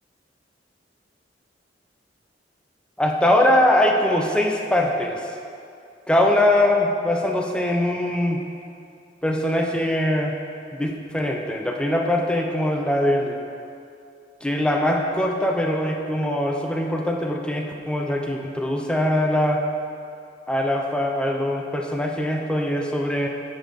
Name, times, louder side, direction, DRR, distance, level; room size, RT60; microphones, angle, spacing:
voice 1, 3.0-5.2 6.1-8.4 9.2-10.4 10.7-13.4 14.4-19.6 20.5-23.3, left 1 dB, 5° left, 1 dB, 0.7 m, -22 dB
9.6 x 5.3 x 6.5 m, 2.5 s
head